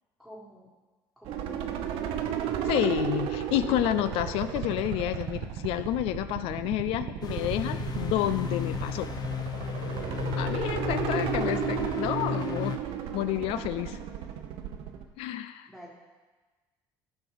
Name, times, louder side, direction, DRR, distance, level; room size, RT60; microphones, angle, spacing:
voice 1, 0.2-0.7 1.2-1.8 2.2-2.5 10.6-11.1 15.7-15.9, equal, ahead, -5 dB, 1.5 m, -49 dB
sound 1, 1.3-15.0, right 9 dB, 75° right, 0.8 m, -34 dB
voice 2, 2.6-9.1 10.4-12.8 13.1-14.0 15.2-15.7, left 13 dB, 75° left, 12 dB, 0.4 m, -29 dB
sound 2, 7.2-12.8, left 8 dB, 45° left, 0.8 m, -34 dB
12.0 x 5.4 x 4.7 m, 1.3 s
supercardioid pair, 90°, 10 cm